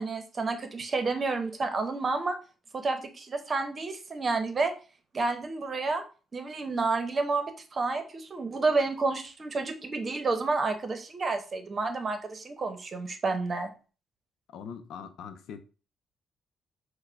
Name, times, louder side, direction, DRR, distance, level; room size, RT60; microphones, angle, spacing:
voice 1, 0.0-2.4 2.7-4.7 5.1-6.0 6.3-13.7, right 3 dB, 35° right, 0.8 m, -30 dB
voice 2, 14.5-15.6, left 7 dB, 80° left, 0.5 m, -42 dB
4.6 x 2.2 x 4.5 m
cardioid pair, 90°, 0 cm